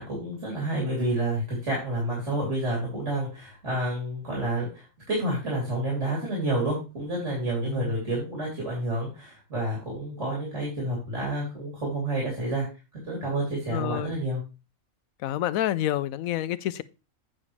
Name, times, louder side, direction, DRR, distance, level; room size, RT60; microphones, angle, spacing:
voice 1, 0.0-12.7 13.0-14.4, right 1 dB, 60° right, 3.7 m, -29 dB
voice 2, 13.7-14.2 15.2-16.8, left 13 dB, 80° left, 1.0 m, -28 dB
8.5 x 7.2 x 3.2 m
omnidirectional pair, 1.4 m